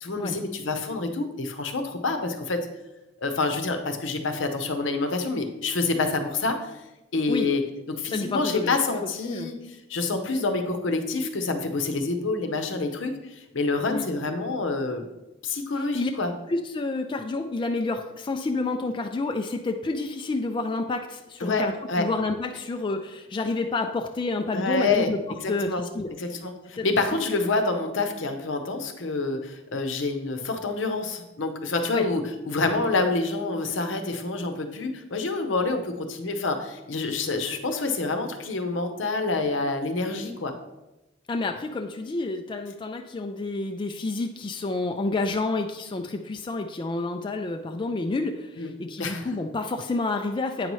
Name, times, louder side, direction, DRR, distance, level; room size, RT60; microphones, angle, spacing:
voice 1, 0.0-2.6 3.2-6.6 7.1-7.6 7.9-9.6 9.9-15.0 15.4-16.3 21.4-22.1 24.5-25.1 25.4-25.8 26.2-40.5 48.6-48.7 49.0-49.3, left 3 dB, 70° left, 6 dB, 0.8 m, -27 dB
voice 2, 8.1-8.7 9.2-9.5 13.9-14.1 15.9-16.1 16.5-21.7 22.0-25.2 25.5-26.1 26.8-26.9 31.9-32.0 41.3-50.7, left 3 dB, 25° left, 4 dB, 0.3 m, -29 dB
8.6 x 5.4 x 3.1 m, 1.0 s
head